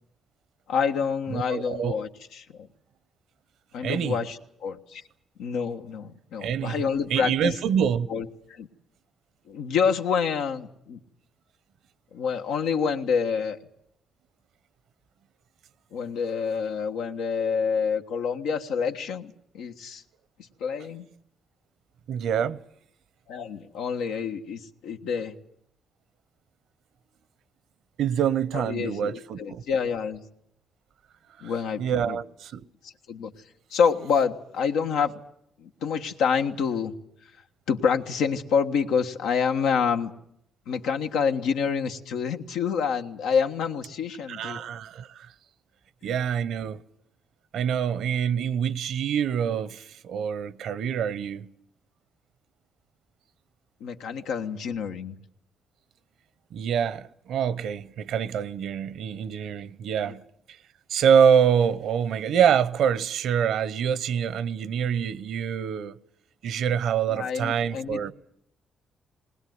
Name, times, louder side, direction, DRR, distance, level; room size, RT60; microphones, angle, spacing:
voice 1, 0.7-2.7 3.7-5.0 5.4-7.5 8.1-8.7 9.5-11.0 12.1-13.6 15.9-20.0 20.4-21.1 23.3-25.3 28.5-30.2 31.4-32.2 32.8-33.3 33.7-35.2 35.6-36.9 37.7-40.1 40.7-44.6 53.8-55.2 60.0-60.2 67.1-68.0, left 6 dB, 90° left, 1.4 m, -27 dB
voice 2, 1.3-2.0 3.8-4.2 6.4-6.8 7.1-8.1 22.1-22.6 28.0-29.6 31.8-32.6 44.3-45.3 46.0-46.8 47.5-51.5 56.5-60.2 60.9-66.0 66.4-68.1, right 8 dB, 75° right, 0.9 m, -25 dB
20.0 x 19.5 x 9.4 m
cardioid pair, 90°, 0 cm